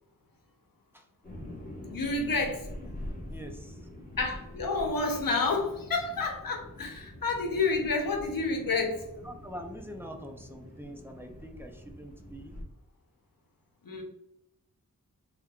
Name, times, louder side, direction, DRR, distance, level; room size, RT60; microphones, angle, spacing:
sound 1, 1.2-12.6, left 1 dB, 25° left, 1.5 m, -45 dB
voice 1, 1.9-2.7 4.2-9.0 13.8-14.0, left 3 dB, 80° left, 2 dB, 1.0 m, -29 dB
voice 2, 3.3-3.8 9.2-12.6, equal, 5° right, 3 dB, 0.7 m, -44 dB
4.4 x 3.6 x 2.4 m, 0.83 s
cardioid pair, 55°, 34 cm